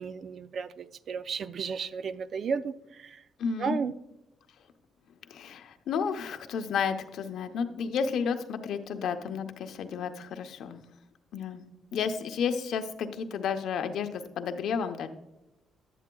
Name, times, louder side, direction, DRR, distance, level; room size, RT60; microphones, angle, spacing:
voice 1, 0.0-3.2 3.6-3.9, right 6 dB, 55° right, 14 dB, 0.4 m, -33 dB
voice 2, 3.4-3.8 5.3-10.8 11.3-11.6 11.9-15.1, left 6 dB, 75° left, 7 dB, 0.7 m, -32 dB
11.0 x 8.4 x 2.3 m, 0.93 s
cardioid pair, 90°, 0 cm